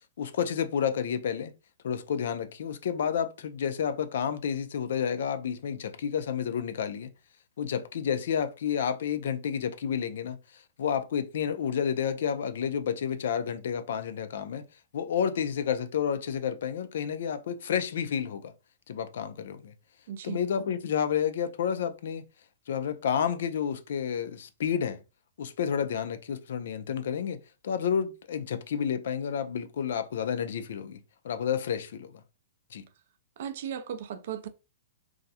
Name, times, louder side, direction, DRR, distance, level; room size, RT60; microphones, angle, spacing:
voice 1, 0.2-1.5 1.8-7.1 7.6-14.7 14.9-18.5 18.9-19.7 20.2-22.3 22.7-25.0 25.4-27.4 27.6-31.0 31.2-32.1 32.7-32.8, left 8 dB, 60° left, 0.3 m, -30 dB
voice 2, 20.1-20.4 33.4-34.5, right 9 dB, 45° right, 0.3 m, -36 dB
2.3 x 2.0 x 2.7 m
hypercardioid pair, 180°, 0 cm